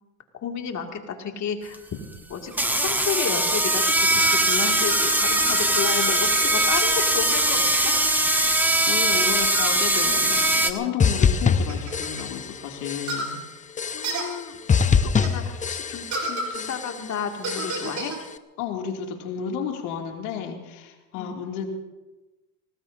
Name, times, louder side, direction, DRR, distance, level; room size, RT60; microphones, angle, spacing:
voice 1, 0.4-1.8 2.3-7.9 13.9-14.6 15.0-18.1 21.2-21.3, left 6 dB, 40° left, 3 dB, 2.5 m, -32 dB
sound 1, 1.7-1.8 2.5-10.7, right 1 dB, 5° right, 1.3 m, -21 dB
sound 2, 4.2-7.4 7.9-8.1 9.1-9.2 9.5-10.8 11.7-12.2 13.1-13.3 14.0-14.2 15.2-15.3 16.1-16.5 17.4-18.2, right 2 dB, 40° right, 3.9 m, -32 dB
voice 2, 5.5-6.1 8.9-13.4 18.6-21.7, left 8 dB, 75° left, 2 dB, 2.8 m, -32 dB
sound 3, 11.0-12.6 12.8-13.4 13.8-14.4 14.7-16.3 16.5-17.1 17.5-18.1, left 6 dB, 15° left, 0.7 m, -24 dB
24.5 x 19.5 x 2.8 m, 1.1 s
supercardioid pair, 105°, 44 cm